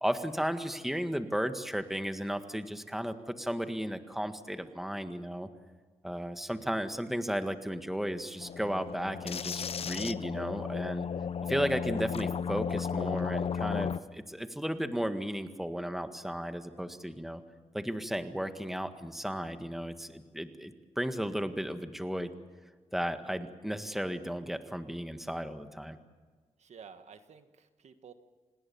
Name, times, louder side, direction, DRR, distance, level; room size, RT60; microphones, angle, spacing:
voice 1, 0.0-5.5 6.0-11.1 11.5-17.4 17.7-22.3 22.9-26.0, equal, ahead, 8 dB, 1.7 m, -34 dB
sound 1, 8.4-14.0, left 7 dB, 60° left, 0.7 m, -34 dB
voice 2, 11.5-11.9 26.6-28.1, right 6 dB, 75° right, 9 dB, 1.6 m, -52 dB
27.0 x 19.5 x 7.1 m, 1.5 s
cardioid pair, 70°, 12 cm